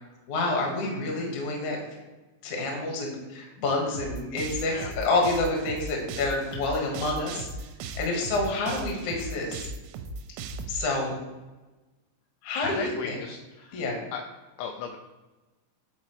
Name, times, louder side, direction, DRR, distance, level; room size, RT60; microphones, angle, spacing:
voice 1, 0.3-1.8 2.4-7.5 8.0-9.6 10.7-11.1 12.4-13.2 13.7-13.9, left 2 dB, 70° left, 0 dB, 1.8 m, -28 dB
sound 1, 3.9-10.8, right 3 dB, 85° right, 2.7 m, -37 dB
voice 2, 12.6-14.2 14.6-15.0, left 6 dB, 90° left, 3 dB, 2.6 m, -36 dB
10.5 x 4.3 x 3.1 m, 1.1 s
omnidirectional pair, 5.8 m